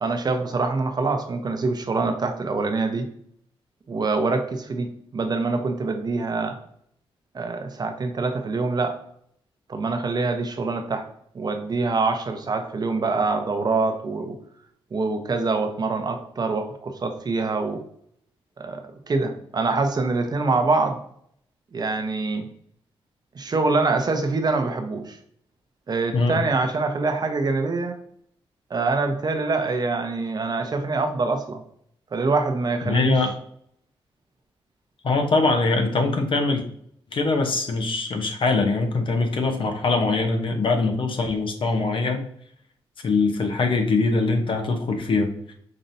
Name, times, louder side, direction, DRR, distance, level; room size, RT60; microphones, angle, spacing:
voice 1, 0.0-3.1 3.9-6.6 7.3-9.0 9.7-11.1 11.3-14.4 14.9-17.8 18.6-18.8 19.1-21.0 21.7-22.4 23.3-25.2 25.9-28.0 28.7-31.6 32.1-33.1, right 3 dB, 45° right, 6 dB, 0.7 m, -25 dB
voice 2, 32.8-33.3 35.0-36.6 37.1-42.3 43.0-45.5, left 3 dB, 60° left, 4 dB, 0.9 m, -22 dB
5.3 x 2.9 x 2.6 m, 0.66 s
cardioid pair, 80°, 10 cm